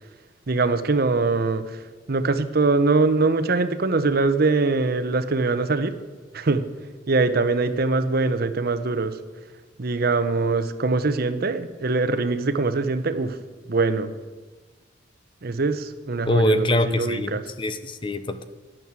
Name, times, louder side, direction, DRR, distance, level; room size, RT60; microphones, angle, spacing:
voice 1, 0.5-5.9 6.3-6.6 7.1-9.2 9.8-13.4 13.7-14.1 15.4-17.4, right 3 dB, 50° right, 11 dB, 0.8 m, -23 dB
voice 2, 16.3-18.4, left 1 dB, 25° left, 11 dB, 0.6 m, -23 dB
11.0 x 9.2 x 7.5 m, 1.3 s
head